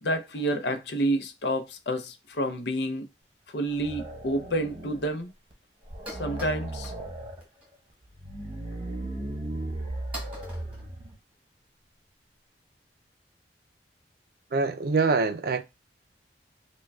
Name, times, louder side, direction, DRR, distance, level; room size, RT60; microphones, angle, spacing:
voice 1, 0.0-3.1 3.5-5.3 6.2-6.9, right 1 dB, 70° left, 0.6 m, -29 dB
sound 1, 3.6-5.2 5.5-5.6 5.8-7.4 8.0-11.2, right 1 dB, 30° right, 0.8 m, -36 dB
sound 2, 4.7-4.8 5.0-5.2 5.4-5.5 5.8-7.0 7.3-7.7 8.1-8.3 9.0-9.1 9.7-9.8 10.1-11.6, right 1 dB, 10° right, 1.2 m, -44 dB
voice 2, 14.5-15.6, right 4 dB, 55° right, 0.4 m, -24 dB
4.7 x 2.2 x 2.2 m
head